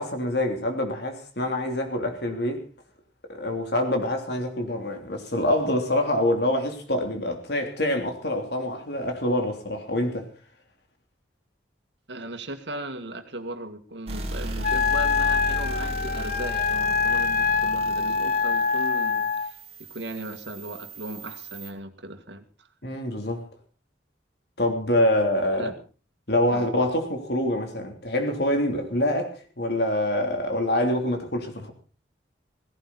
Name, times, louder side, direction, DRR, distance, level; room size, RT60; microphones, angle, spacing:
voice 1, 0.0-2.6 3.3-10.3 22.8-23.4 24.6-25.7 26.3-31.7, left 1 dB, 60° left, 3.3 m, -25 dB
voice 2, 12.1-19.6 19.9-22.4 25.6-25.7 26.5-26.7, right 1 dB, 70° right, 2.0 m, -37 dB
sound 1, 14.1-21.7, right 1 dB, 30° right, 2.6 m, -36 dB
Wind instrument woodwind instrument, 14.6-19.5, left 5 dB, 45° left, 0.8 m, -24 dB
17.0 x 16.5 x 4.2 m
head